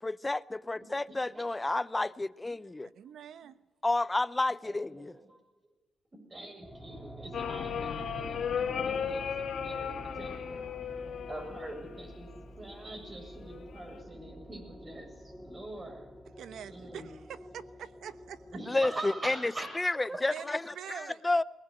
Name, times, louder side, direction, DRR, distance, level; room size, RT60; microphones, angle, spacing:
voice 1, 0.0-2.9 3.8-5.2 18.6-21.4, left 2 dB, 20° left, 0.7 m, -31 dB
voice 2, 1.1-1.5 4.6-5.4 6.1-10.7 11.3-12.3 12.6-16.1 16.6-17.1 18.5-20.5, right 1 dB, 30° right, 7.4 m, -44 dB
voice 3, 2.9-3.6 16.4-18.4 20.3-21.2, right 9 dB, 75° right, 1.1 m, -45 dB
sound 1, 6.6-18.6, right 1 dB, ahead, 1.9 m, -48 dB
sound 2, 7.3-12.4 13.5-14.0, left 7 dB, 65° left, 2.5 m, -35 dB
21.5 x 19.0 x 9.1 m
cardioid pair, 80°, 0 cm